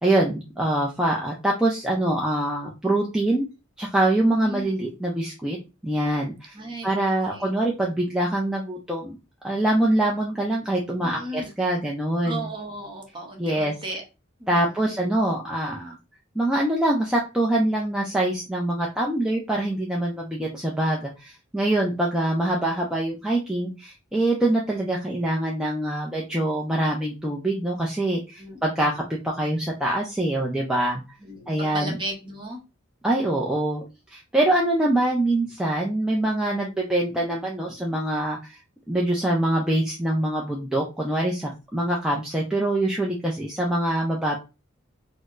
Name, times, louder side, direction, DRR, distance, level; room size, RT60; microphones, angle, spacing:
voice 1, 0.0-3.5 3.8-5.6 5.8-6.6 6.8-9.2 9.4-12.4 13.4-13.7 14.5-16.0 16.4-31.0 31.5-31.9 33.0-33.8 34.1-38.6 38.9-44.4, right 1 dB, 5° right, -3 dB, 0.4 m, -24 dB
voice 2, 4.4-4.7 6.5-7.5 11.0-11.5 12.2-14.0 14.4-15.0 28.4-28.9 31.2-32.6, right 1 dB, 25° right, 2 dB, 0.8 m, -36 dB
4.0 x 2.0 x 2.4 m, 0.28 s
head